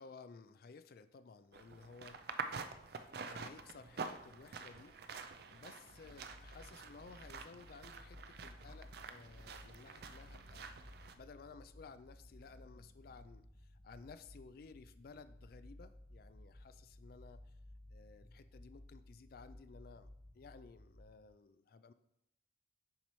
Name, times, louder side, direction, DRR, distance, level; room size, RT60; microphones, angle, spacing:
voice 1, 0.0-2.2 3.2-10.7 11.1-17.6 17.9-20.1 20.3-21.9, left 4 dB, 50° left, 12 dB, 0.3 m, -56 dB
sound 1, 1.5-11.1, right 5 dB, 55° right, 0.4 m, -48 dB
sound 2, 5.9-21.2, left 1 dB, 15° left, 0.7 m, -57 dB
7.2 x 5.4 x 3.1 m, 0.82 s
head